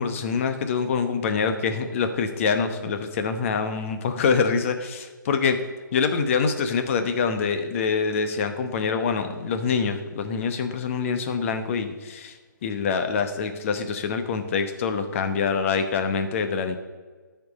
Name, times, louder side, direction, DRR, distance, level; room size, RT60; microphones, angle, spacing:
voice 1, 0.0-5.6 5.9-16.8, left 5 dB, 40° left, 8 dB, 1.0 m, -25 dB
12.0 x 4.5 x 5.2 m, 1.4 s
figure-of-eight pair, 140°, 11 cm